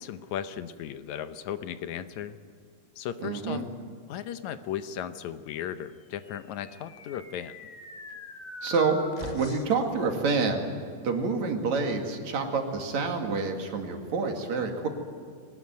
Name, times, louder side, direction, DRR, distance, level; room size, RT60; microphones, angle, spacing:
voice 1, 0.0-2.4 3.0-3.6 4.1-7.6, left 10 dB, 75° left, 11 dB, 2.2 m, -36 dB
voice 2, 3.2-3.7 8.6-9.0 9.2-10.6 11.0-14.9, right 4 dB, 70° right, 3 dB, 3.6 m, -28 dB
sound 1, 6.2-9.9, left 2 dB, 30° left, 0.7 m, -43 dB
22.5 x 19.5 x 9.4 m, 2.2 s
omnidirectional pair, 3.4 m